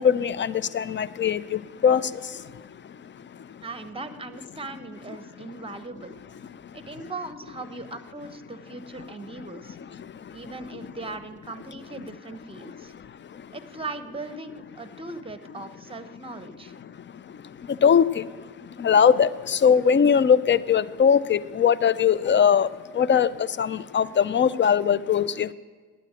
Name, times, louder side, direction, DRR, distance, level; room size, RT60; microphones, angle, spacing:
voice 1, 0.0-3.7 5.4-5.5 6.4-7.0 9.0-9.1 9.5-10.8 11.9-12.0 12.6-13.6 16.8-25.5, left 7 dB, 35° left, 0.5 m, -23 dB
voice 2, 3.6-6.2 6.7-9.8 10.3-12.9 13.5-16.7, right 3 dB, 15° right, 1.0 m, -39 dB
8.9 x 8.9 x 8.8 m
supercardioid pair, 55°, 32 cm